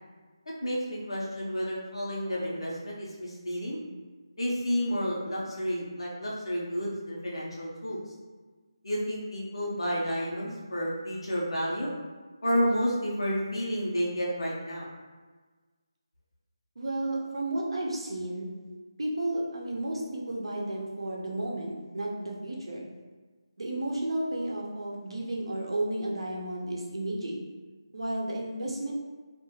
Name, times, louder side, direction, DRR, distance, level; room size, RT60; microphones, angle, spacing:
voice 1, 0.6-3.8 4.4-8.0 8.8-11.9 12.4-14.9, equal, 80° left, -5 dB, 0.9 m, -30 dB
voice 2, 16.8-18.5 19.0-22.9 23.6-27.4 27.9-28.9, right 1 dB, 80° right, -3 dB, 0.6 m, -32 dB
2.5 x 2.3 x 3.0 m, 1.4 s
figure-of-eight pair, 175°, 3 cm